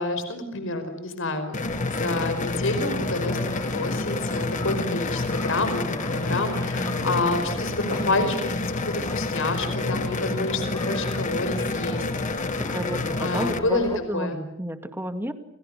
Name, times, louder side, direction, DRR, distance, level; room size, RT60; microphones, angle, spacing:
voice 1, 0.0-8.5 8.9-12.0 13.2-14.4, left 2 dB, 65° left, 9 dB, 5.1 m, -28 dB
sound 1, 1.5-13.6, left 2 dB, 35° left, 1.3 m, -28 dB
sound 2, 1.6-14.0, left 1 dB, 20° left, 5.0 m, -38 dB
voice 2, 12.6-15.3, equal, 10° right, 8 dB, 2.3 m, -31 dB
30.0 x 29.5 x 6.7 m, 0.76 s
head